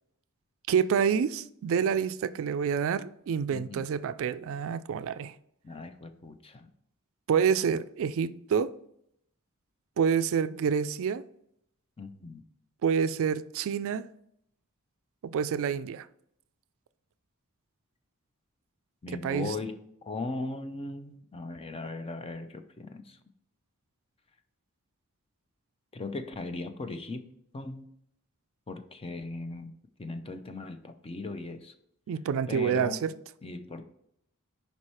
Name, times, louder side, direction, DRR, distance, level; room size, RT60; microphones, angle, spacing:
voice 1, 0.7-5.3 7.3-8.7 10.0-11.2 12.8-14.1 15.2-16.1 19.1-19.5 32.1-33.1, right 7 dB, 65° right, 0.3 m, -28 dB
voice 2, 3.5-3.9 5.6-6.7 12.0-12.4 19.0-19.8 20.0-23.2 25.9-27.3 27.5-27.9 28.7-29.7 30.0-31.7 32.5-33.0 33.4-33.8, left 3 dB, 25° left, 0.5 m, -38 dB
5.4 x 4.7 x 4.3 m
head